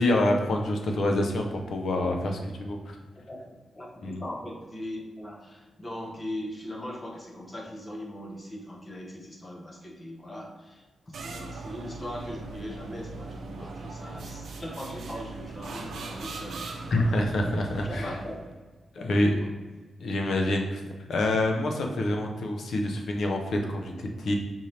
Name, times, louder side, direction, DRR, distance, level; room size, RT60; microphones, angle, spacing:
voice 1, 0.0-3.0 4.0-4.2 16.9-18.1 19.0-19.3 20.0-20.8 21.1-24.3, left 1 dB, 65° left, 2 dB, 0.6 m, -26 dB
voice 2, 3.2-17.2 17.8-18.6 18.9-19.5, left 1 dB, 25° left, 0 dB, 0.7 m, -40 dB
sound 1, 11.1-18.5, right 3 dB, 80° right, 0.6 m, -40 dB
5.3 x 2.7 x 3.2 m, 1.3 s
wide cardioid pair, 145°, 0 cm